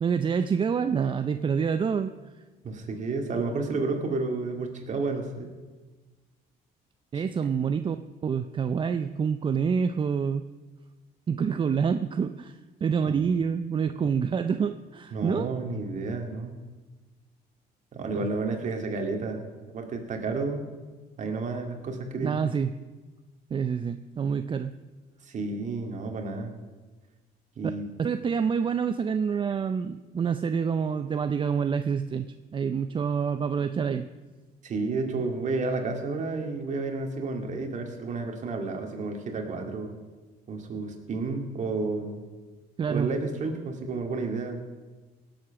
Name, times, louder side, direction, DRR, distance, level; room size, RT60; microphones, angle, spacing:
voice 1, 0.0-2.1 7.1-8.0 8.2-10.4 11.3-15.5 18.1-18.3 22.2-22.7 23.5-24.7 28.0-32.3 32.5-34.1 42.8-43.1, right 6 dB, 30° right, 9 dB, 0.5 m, -27 dB
voice 2, 2.6-5.6 7.1-7.2 13.0-13.1 15.1-16.6 17.9-19.5 19.7-20.6 21.2-22.4 25.2-26.5 27.6-27.9 34.6-40.0 40.5-42.3 42.9-44.6, right 3 dB, 45° right, 4 dB, 2.3 m, -31 dB
17.5 x 7.7 x 5.9 m, 1.3 s
cardioid pair, 110°, 17 cm